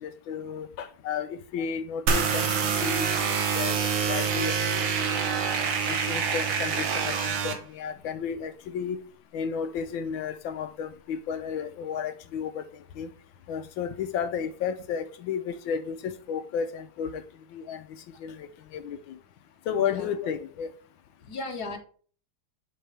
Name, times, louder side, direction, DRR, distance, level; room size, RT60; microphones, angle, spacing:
voice 1, 0.0-4.6 5.0-5.4 5.9-9.0 9.3-12.6 13.0-13.1 13.5-17.2 17.5-17.8 18.2-19.2 19.7-20.7, left 7 dB, 80° left, 1.4 m, -33 dB
sound 1, 2.1-7.5, right 6 dB, 85° right, 2.0 m, -26 dB
voice 2, 19.7-20.1 21.2-21.8, left 2 dB, 50° left, 1.9 m, -36 dB
7.8 x 4.7 x 3.3 m
omnidirectional pair, 2.2 m